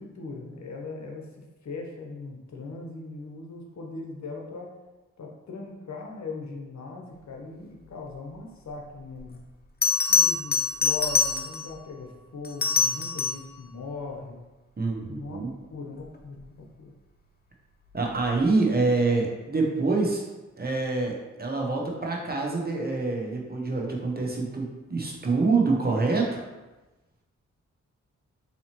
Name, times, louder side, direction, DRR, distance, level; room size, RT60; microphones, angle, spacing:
voice 1, 0.0-4.7 5.2-9.4 10.1-14.5 15.0-15.4 15.7-16.9, left 3 dB, 60° left, 0 dB, 0.8 m, -39 dB
Bell, 9.2-9.3 9.8-11.8 12.4-13.5 16.2-16.5, left 5 dB, 30° left, 0.6 m, -24 dB
voice 2, 14.8-15.5 17.9-20.2 20.6-26.4, right 3 dB, 30° right, -1 dB, 0.9 m, -26 dB
4.1 x 2.8 x 2.9 m, 1.1 s
cardioid pair, 45°, 31 cm